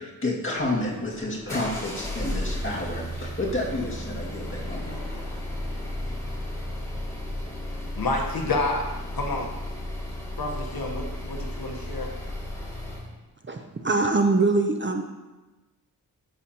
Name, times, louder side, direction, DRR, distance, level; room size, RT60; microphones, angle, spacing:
voice 1, 0.0-5.0, left 2 dB, 30° left, -4 dB, 2.1 m, -30 dB
sound 1, 0.6-13.1, left 1 dB, 10° left, 2.2 m, -34 dB
voice 2, 8.0-8.8 9.1-9.5 10.4-12.1, left 2 dB, 65° left, 2 dB, 1.1 m, -29 dB
voice 3, 13.5-15.0, right 3 dB, 30° right, 4 dB, 0.6 m, -23 dB
12.0 x 6.6 x 2.9 m, 1.1 s
wide cardioid pair, 95°, 40 cm